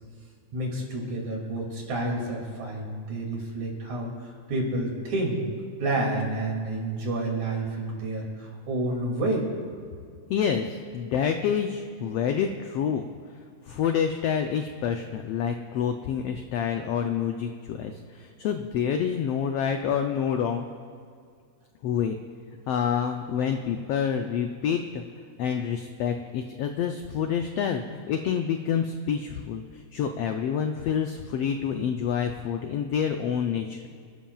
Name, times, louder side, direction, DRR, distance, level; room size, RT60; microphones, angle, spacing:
voice 1, 0.5-5.4 5.8-9.5, right 2 dB, 70° right, -1 dB, 3.9 m, -29 dB
voice 2, 10.3-13.0 13.7-20.7 21.8-22.2 22.7-25.0 25.4-29.6 29.9-33.9, left 7 dB, 85° left, 5 dB, 1.4 m, -27 dB
27.5 x 12.5 x 2.4 m, 2.2 s
omnidirectional pair, 3.5 m